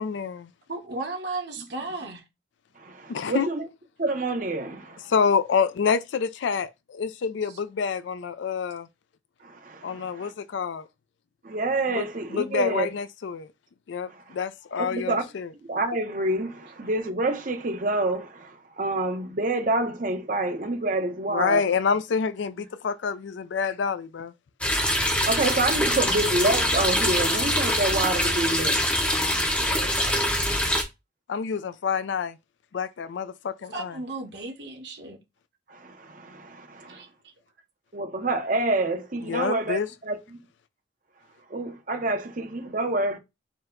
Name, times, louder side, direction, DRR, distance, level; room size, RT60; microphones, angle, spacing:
voice 1, 0.0-0.5 3.1-3.5 5.1-8.9 9.8-10.9 11.9-12.0 12.3-13.5 13.9-15.5 21.3-24.3 31.3-32.4 32.7-34.0 39.3-39.9, left 6 dB, 75° left, 0.4 m, -27 dB
voice 2, 0.7-2.2 33.7-35.2 36.9-37.3, right 3 dB, 65° right, 1.0 m, -35 dB
voice 3, 2.8-3.6 4.0-5.1 9.4-10.3 11.4-12.9 14.1-14.3 14.8-15.2 15.7-21.7 25.2-28.9 29.5-30.3 35.7-37.0 37.9-40.2 41.5-43.2, right 2 dB, 45° right, 0.7 m, -28 dB
sound 1, 24.6-30.8, equal, 5° left, 0.6 m, -24 dB
4.4 x 2.1 x 3.7 m
head